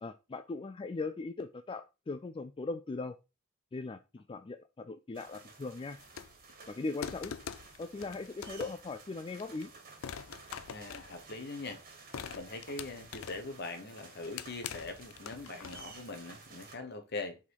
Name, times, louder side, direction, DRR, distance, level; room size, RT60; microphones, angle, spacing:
voice 1, 0.0-3.1 3.7-6.0 6.7-7.3 7.8-9.7, left 3 dB, 25° left, 0.3 m, -39 dB
sound 1, 5.1-16.7, right 4 dB, 45° right, 1.9 m, -54 dB
sound 2, 6.0-6.5 7.0-8.9 9.4-9.6 10.0-11.6 12.1-13.6 14.0-16.0, left 7 dB, 90° left, 0.5 m, -44 dB
voice 2, 10.7-11.8 12.3-17.4, left 3 dB, 55° left, 1.3 m, -42 dB
5.8 x 4.2 x 4.7 m
head